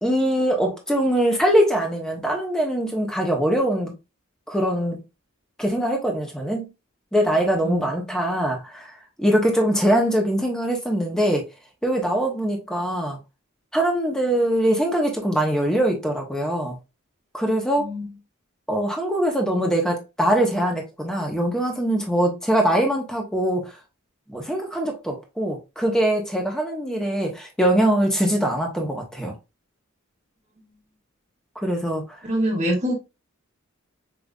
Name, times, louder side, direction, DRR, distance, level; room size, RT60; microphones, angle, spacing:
voice 1, 0.0-3.9 4.5-5.0 5.6-6.7 7.1-11.4 11.8-13.2 13.7-16.8 17.3-17.9 18.7-23.7 24.3-29.3 31.6-32.2, right 1 dB, 5° left, 1.0 m, -22 dB
voice 2, 17.8-18.1 32.2-32.9, equal, 35° right, 1.5 m, -25 dB
5.2 x 3.0 x 2.3 m
head